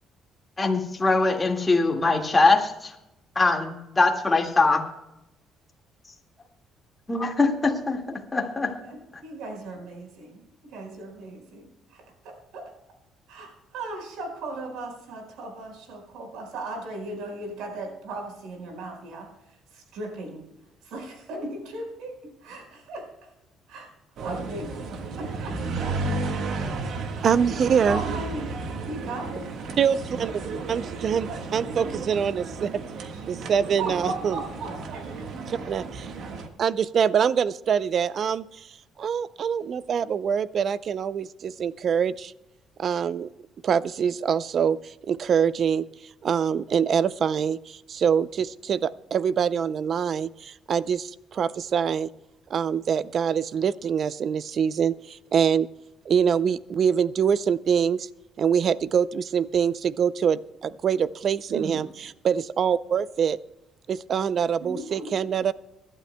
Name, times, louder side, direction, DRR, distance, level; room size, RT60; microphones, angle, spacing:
voice 1, 0.6-3.0 3.4-4.8 7.1-8.8, left 3 dB, 20° left, 2 dB, 1.9 m, -22 dB
voice 2, 8.8-12.6 13.3-19.3 19.7-20.4 20.8-23.1 23.7-23.9 24.2-25.9 27.8-28.5 28.8-29.5 30.2-30.3 33.8-35.2 35.6-35.7 61.5-61.8 64.6-65.1, right 2 dB, 85° right, 2 dB, 4.7 m, -37 dB
sound 1, 24.2-36.5, right 3 dB, 65° right, 1.5 m, -33 dB
voice 3, 27.2-28.0 29.8-30.3 30.7-34.4 35.5-36.1 36.6-38.7 39.0-42.3 42.8-43.3 43.6-45.8 46.2-52.1 52.5-55.7 56.1-58.1 58.4-63.4 63.9-65.5, right 7 dB, 45° right, 17 dB, 0.5 m, -24 dB
25.0 x 12.0 x 2.2 m, 0.90 s
cardioid pair, 135°, 0 cm